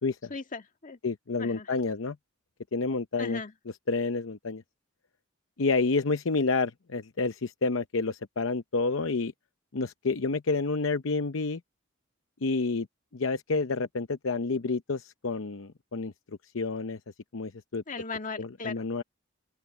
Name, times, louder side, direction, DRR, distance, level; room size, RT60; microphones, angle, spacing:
voice 1, 0.3-1.0 1.4-1.7 3.2-3.5 17.9-19.0, left 4 dB, 40° left, 1.9 m, -37 dB
voice 2, 1.0-2.2 2.7-3.4 3.9-4.6 5.6-9.3 9.7-11.6 12.4-12.9 13.1-16.1 16.5-17.0 17.3-17.8 18.4-19.0, left 3 dB, 70° left, 0.7 m, -29 dB
open air
head